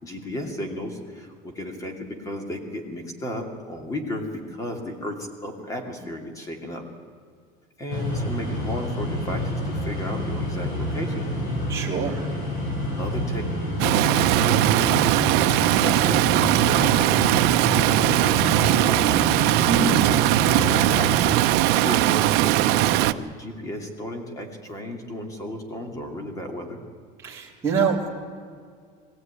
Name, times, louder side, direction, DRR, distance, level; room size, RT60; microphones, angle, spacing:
voice 1, 0.0-6.8 7.8-11.3 13.0-13.5 13.9-15.2 15.5-19.1 20.5-21.4 21.7-26.8, left 1 dB, 15° left, 4 dB, 2.7 m, -34 dB
sound 1, 7.9-21.2, equal, 55° left, 6.6 m, -28 dB
voice 2, 11.7-12.4 19.6-20.0 27.2-28.1, right 5 dB, 15° right, -5 dB, 3.4 m, -25 dB
Stream, 13.8-23.1, right 16 dB, 60° right, 0.7 m, -20 dB
22.5 x 15.5 x 9.8 m, 2.1 s
cardioid pair, 175°, 19 cm